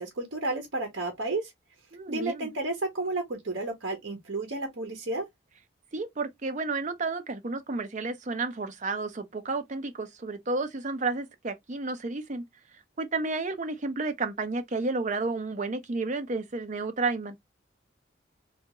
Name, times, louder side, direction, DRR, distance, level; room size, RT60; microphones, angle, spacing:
voice 1, 0.0-1.5 2.1-5.3, right 2 dB, 65° right, 0.9 m, -32 dB
voice 2, 1.9-2.5 5.9-12.4 12.7-17.4, right 3 dB, 40° right, 0.6 m, -31 dB
3.5 x 2.3 x 2.8 m
head